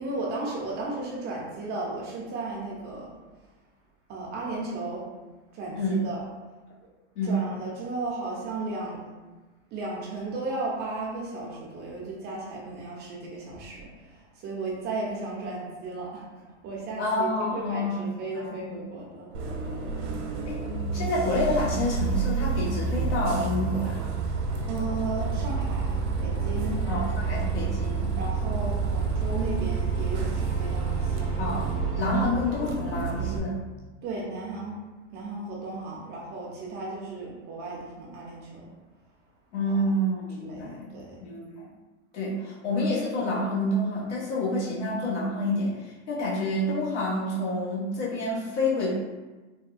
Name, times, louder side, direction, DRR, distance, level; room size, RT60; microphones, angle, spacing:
voice 1, 0.0-3.1 4.1-5.0 5.5-6.2 7.2-9.1 9.7-16.3 16.6-19.8 24.7-26.8 28.2-31.4 34.0-34.8 35.1-38.7 39.7-39.9 40.4-41.2, right 2 dB, 30° right, -3 dB, 0.5 m, -35 dB
voice 2, 5.7-6.1 7.1-7.5 17.0-18.0 18.4-18.8 20.4-20.6 20.9-24.0 26.9-28.1 31.4-31.7 31.9-33.6 39.5-40.9 41.2-41.7 42.1-49.0, left 1 dB, 70° left, -6 dB, 1.2 m, -28 dB
Bus, 19.3-33.4, right 5 dB, 80° right, 0.7 m, -29 dB
sound 1, 25.2-32.1, right 3 dB, 35° left, 0.8 m, -37 dB
3.4 x 2.2 x 2.4 m, 1.2 s
supercardioid pair, 135°, 36 cm